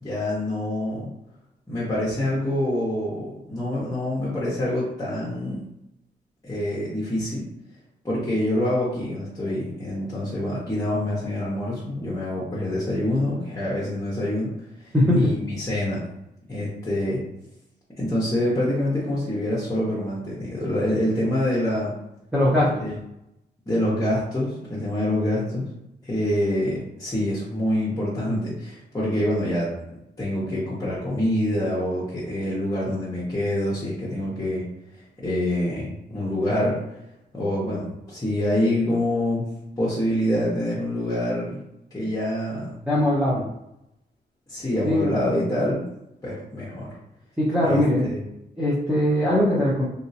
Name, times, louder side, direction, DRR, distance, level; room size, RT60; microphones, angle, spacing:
voice 1, 0.0-1.1 1.7-5.6 6.4-7.4 8.0-14.5 14.8-16.0 16.5-17.2 18.0-21.9 22.8-22.9 23.7-25.6 26.0-29.7 30.2-34.6 35.2-36.8 37.3-39.5 39.8-41.6 41.9-42.8 44.5-45.8 46.2-46.9 47.6-48.2, left 1 dB, 20° left, -8 dB, 1.0 m, -26 dB
voice 2, 14.9-15.3 22.3-22.7 42.9-43.4 44.8-45.2 47.4-48.1 48.6-49.8, left 1 dB, 5° right, -8 dB, 0.8 m, -20 dB
3.2 x 2.7 x 2.8 m, 0.83 s
cardioid pair, 85°, 18 cm